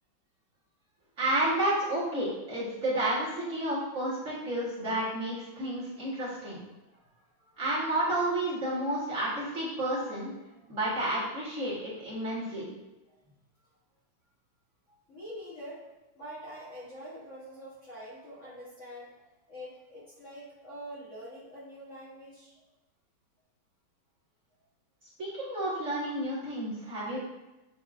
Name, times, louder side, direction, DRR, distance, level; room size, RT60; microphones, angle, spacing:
voice 1, 1.2-6.6 7.6-10.3 10.7-12.7 25.2-27.2, right 1 dB, 45° right, -9 dB, 1.8 m, -31 dB
voice 2, 6.9-7.9 10.5-10.8 13.1-13.2 14.9-15.8 16.1-22.6, equal, 50° left, -7 dB, 1.1 m, -46 dB
7.2 x 2.8 x 2.4 m, 1.0 s
omnidirectional pair, 2.1 m